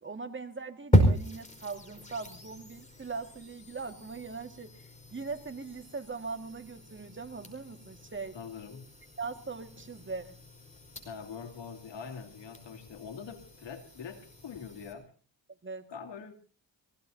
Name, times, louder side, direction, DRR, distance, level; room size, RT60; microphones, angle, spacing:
voice 1, 0.0-8.4 9.2-10.4 15.6-15.9, right 4 dB, 25° right, 7 dB, 2.0 m, -40 dB
sound 1, 0.9-14.9, equal, 15° left, 5.0 m, -34 dB
voice 2, 8.3-9.0 11.0-15.1 15.9-16.3, left 6 dB, 70° left, 6 dB, 2.8 m, -44 dB
25.5 x 17.0 x 2.8 m, 0.35 s
cardioid pair, 60°, 44 cm